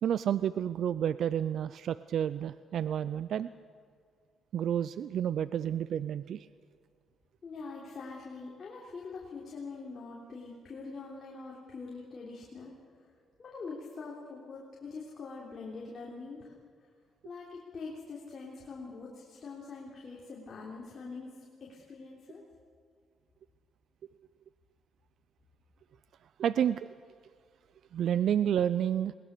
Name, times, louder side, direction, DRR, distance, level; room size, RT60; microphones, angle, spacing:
voice 1, 0.0-3.5 4.5-6.5 26.4-26.9 27.9-29.1, right 9 dB, 65° right, 15 dB, 0.4 m, -30 dB
voice 2, 7.4-12.7 13.4-16.5 17.2-21.3 21.6-22.4, left 4 dB, 45° left, -4 dB, 3.4 m, -44 dB
21.0 x 19.5 x 6.7 m, 2.2 s
cardioid pair, 90°, 0 cm